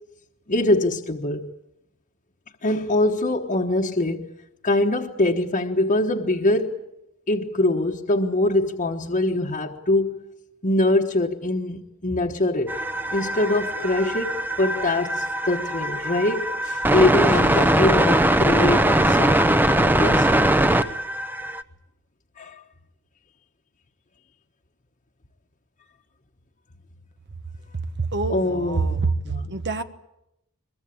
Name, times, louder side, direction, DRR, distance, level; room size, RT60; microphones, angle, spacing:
voice 1, 0.5-1.5 2.6-4.3 4.6-6.7 7.3-10.2 10.6-12.8 13.1-20.3 22.4-22.6 28.3-28.9 29.3-29.5, left 2 dB, 35° left, 1.2 m, -23 dB
sound 1, 12.7-21.6, right 1 dB, 10° right, 0.8 m, -21 dB
voice 2, 28.1-29.1 29.5-29.8, right 3 dB, 50° right, 1.2 m, -25 dB
22.5 x 22.0 x 8.5 m
head